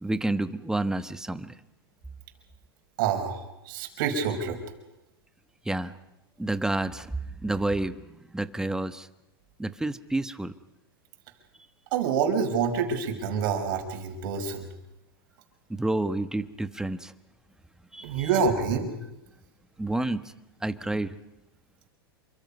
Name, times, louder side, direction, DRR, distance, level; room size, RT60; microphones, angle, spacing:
voice 1, 0.0-1.5 5.6-5.9 6.4-7.1 7.4-8.0 8.3-9.1 9.6-10.5 15.7-17.1 17.9-18.3 19.8-20.2 20.6-21.1, right 2 dB, 5° right, 11 dB, 1.2 m, -29 dB
voice 2, 3.0-4.6 11.9-14.7 18.0-18.9, right 6 dB, 60° right, 4 dB, 5.5 m, -27 dB
28.0 x 24.5 x 5.4 m, 0.93 s
hypercardioid pair, 105°, 13 cm